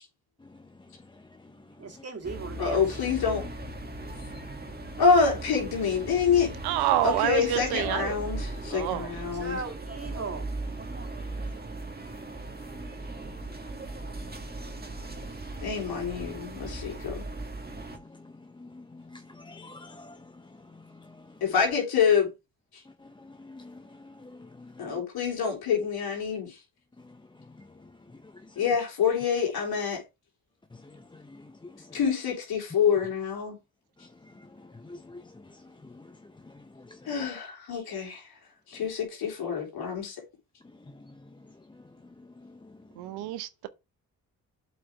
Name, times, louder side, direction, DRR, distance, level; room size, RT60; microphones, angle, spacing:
voice 1, 1.8-2.8 7.1-7.4 9.4-10.5, right 4 dB, 40° right, 2.5 m, -37 dB
sound 1, 2.2-18.0, right 2 dB, 25° right, 1.8 m, -38 dB
voice 2, 2.6-3.4 5.0-6.5 7.0-9.6 15.6-17.2 21.4-22.3 22.7-22.8 24.8-26.6 28.6-30.0 31.9-33.6 37.1-38.3 38.7-40.2, left 6 dB, 75° left, 3.5 m, -26 dB
voice 3, 6.6-8.2 8.7-9.1 43.0-43.7, right 13 dB, 90° right, 0.8 m, -28 dB
voice 4, 18.6-20.2 23.4-23.7 24.0-24.3 24.8-24.9 31.9-32.0 34.4-34.5 34.7-35.2 36.9-37.3, left 2 dB, 10° left, 0.6 m, -46 dB
7.8 x 5.1 x 3.5 m
supercardioid pair, 55°, 38 cm